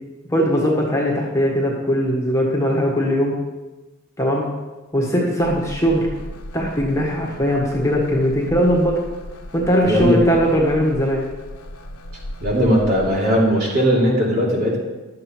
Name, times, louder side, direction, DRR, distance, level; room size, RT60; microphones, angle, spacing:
voice 1, 0.3-3.4 4.2-4.5 4.9-6.1 6.5-9.0 9.5-11.2, equal, 15° left, -2 dB, 1.6 m, -19 dB
sound 1, 5.4-13.2, equal, 85° left, 1.1 m, -36 dB
voice 2, 9.8-10.2 12.4-14.8, equal, 45° right, -4 dB, 3.0 m, -18 dB
11.5 x 7.7 x 4.5 m, 1.1 s
head